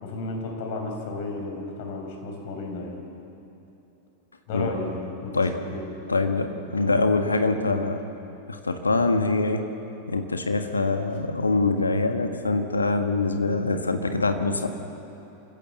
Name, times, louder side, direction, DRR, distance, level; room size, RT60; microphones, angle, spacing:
voice 1, 0.0-3.0 4.5-4.9 5.2-5.8, left 3 dB, 50° left, 2 dB, 5.1 m, -33 dB
voice 2, 6.1-8.0 8.5-9.6 10.1-14.7, left 3 dB, 80° left, 6 dB, 1.6 m, -24 dB
28.0 x 15.5 x 7.5 m, 3.0 s
figure-of-eight pair, 90°, 0 cm